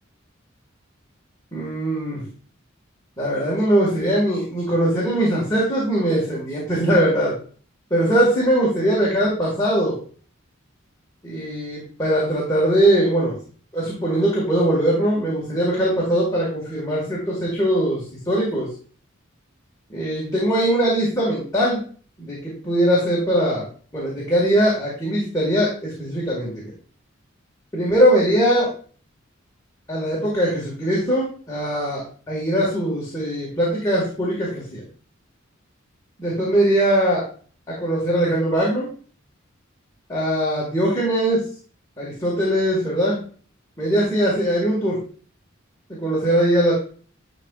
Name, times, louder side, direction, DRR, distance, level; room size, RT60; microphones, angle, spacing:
voice 1, 1.5-2.2 3.2-7.3 7.9-10.0 11.2-13.3 13.7-18.7 19.9-21.8 22.2-23.7 23.9-26.7 27.7-28.7 29.9-34.8 36.2-37.2 37.7-38.9 40.1-41.5 42.0-43.2 43.8-45.0 45.9-46.7, right 1 dB, 20° left, -6 dB, 1.7 m, -21 dB
10.5 x 4.2 x 2.4 m, 0.42 s
head